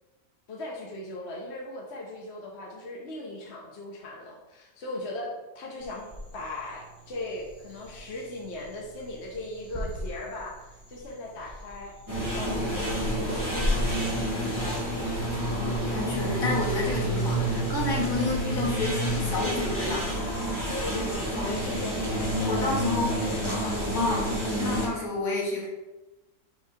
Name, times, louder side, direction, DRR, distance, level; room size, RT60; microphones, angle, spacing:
voice 1, 0.5-6.1 6.3-15.2 20.7-24.2, left 2 dB, 50° left, -2 dB, 1.1 m, -38 dB
taman negara laser crickets, 5.8-23.3, left 1 dB, 5° left, 1.2 m, -40 dB
sound 1, 12.1-24.9, right 1 dB, 15° right, 1.6 m, -29 dB
voice 2, 15.5-20.1 21.4-21.6 22.5-23.1 23.9-24.3 24.6-25.7, left 2 dB, 65° left, -3 dB, 2.0 m, -30 dB
6.5 x 3.3 x 5.0 m, 1.0 s
omnidirectional pair, 1.6 m